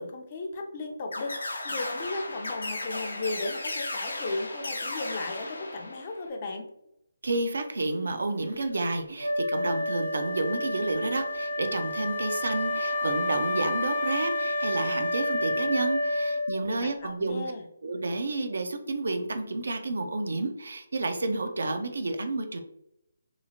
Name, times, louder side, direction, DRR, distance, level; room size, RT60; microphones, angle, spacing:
voice 1, 0.0-6.7 16.6-17.6, left 2 dB, 35° left, 3 dB, 0.5 m, -35 dB
sound 1, 1.1-6.3, left 2 dB, 80° left, 0.7 m, -35 dB
voice 2, 7.2-17.5 17.8-22.6, right 2 dB, 70° right, 7 dB, 0.5 m, -30 dB
Wind instrument woodwind instrument, 9.2-16.8, left 1 dB, 90° right, 1.1 m, -29 dB
2.9 x 2.4 x 2.7 m, 0.79 s
figure-of-eight pair, 155°, 0 cm